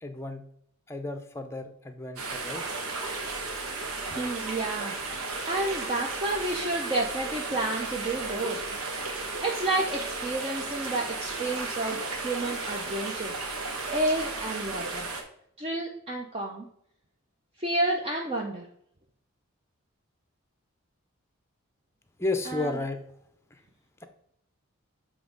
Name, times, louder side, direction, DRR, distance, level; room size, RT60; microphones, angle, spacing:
voice 1, 0.0-0.4 0.9-2.6 22.2-23.0 23.5-23.6, left 2 dB, 10° left, 7 dB, 0.6 m, -33 dB
sound 1, 2.2-15.2, right 3 dB, 90° right, 1.3 m, -34 dB
voice 2, 4.1-4.9 5.5-8.6 9.4-12.0 12.2-13.4 13.9-15.1 15.6-16.7 17.6-18.6 22.5-22.7, right 2 dB, 25° right, 0 dB, 0.6 m, -30 dB
7.5 x 3.5 x 5.1 m, 0.70 s
head